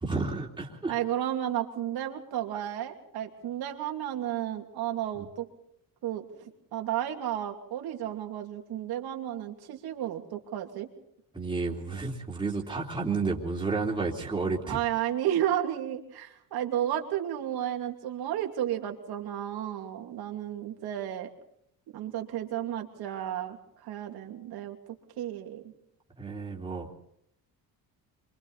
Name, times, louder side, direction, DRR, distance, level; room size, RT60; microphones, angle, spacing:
voice 1, 0.0-0.9 5.1-5.3 11.3-14.8 26.2-26.9, right 4 dB, 10° right, -3 dB, 3.2 m, -31 dB
voice 2, 0.9-5.5 6.0-10.9 14.7-21.3 21.9-23.6 23.8-24.8 25.2-25.6, right 11 dB, 80° right, 3 dB, 2.7 m, -32 dB
27.0 x 24.0 x 4.1 m, 0.72 s
cardioid pair, 120°, 37 cm